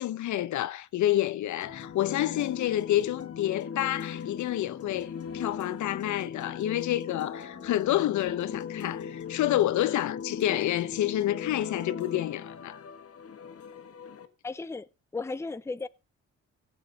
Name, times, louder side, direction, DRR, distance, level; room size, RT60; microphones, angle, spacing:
voice 1, 0.0-12.8, left 13 dB, 70° left, 0.8 m, -28 dB
sound 1, 1.6-14.3, left 7 dB, 50° left, 1.7 m, -39 dB
voice 2, 14.4-15.9, left 3 dB, 10° left, 0.6 m, -35 dB
16.5 x 7.3 x 4.1 m
cardioid pair, 90°, 30 cm